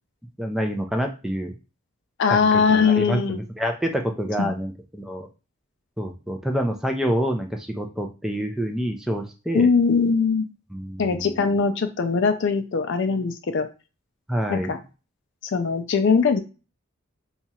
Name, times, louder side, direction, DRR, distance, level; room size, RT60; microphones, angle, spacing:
voice 1, 0.4-1.5 2.3-5.3 6.0-9.7 10.7-11.5 14.3-14.7, equal, ahead, 3 dB, 0.4 m, -27 dB
voice 2, 2.2-3.4 4.4-4.5 9.5-10.4 11.0-13.7 14.5-14.8 15.4-16.4, left 5 dB, 55° left, 8 dB, 0.4 m, -21 dB
2.8 x 2.4 x 4.2 m, 0.32 s
head